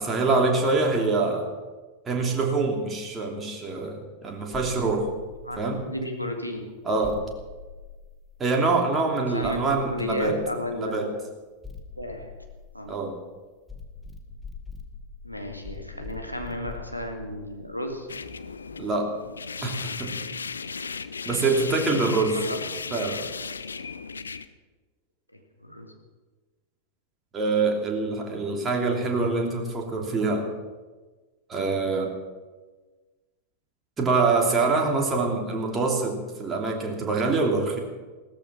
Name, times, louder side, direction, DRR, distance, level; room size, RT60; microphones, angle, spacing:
voice 1, 0.0-1.5 2.1-5.1 5.6-5.8 6.9-7.2 8.4-10.4 10.7-11.1 12.9-13.2 18.8-19.1 19.6-20.2 21.3-22.4 22.9-23.2 27.3-30.5 31.5-32.1 34.0-37.8, right 3 dB, 20° right, 1 dB, 2.9 m, -25 dB
sound 1, 4.5-6.0 7.0-8.6 9.4-10.8 11.6-13.2 13.7-19.0, left 5 dB, 5° left, 1.9 m, -44 dB
voice 2, 5.4-6.7 9.2-11.1 12.0-12.3 12.7-13.0 15.2-18.1 22.3-22.6 25.3-25.9 27.4-27.7, left 1 dB, 90° left, 3 dB, 2.0 m, -34 dB
sound 2, 18.1-24.5, left 5 dB, 75° left, 0.6 m, -35 dB
16.5 x 13.5 x 6.1 m, 1.3 s
figure-of-eight pair, 90°, 0 cm